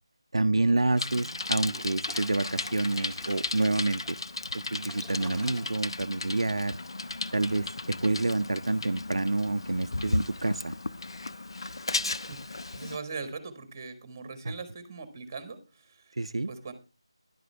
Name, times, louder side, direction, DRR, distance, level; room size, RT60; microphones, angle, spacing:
voice 1, 0.3-4.2 4.5-6.8 7.3-10.7 16.2-16.5, right 2 dB, 70° right, 9 dB, 0.5 m, -28 dB
Bicycle, 1.0-13.0, left 2 dB, 60° left, 0.7 m, -35 dB
Toilet flush, 1.3-12.1, equal, 10° left, 1.1 m, -52 dB
voice 2, 12.1-16.2 16.5-16.7, right 4 dB, 25° right, 10 dB, 1.7 m, -41 dB
12.5 x 11.0 x 3.4 m, 0.31 s
figure-of-eight pair, 165°, 3 cm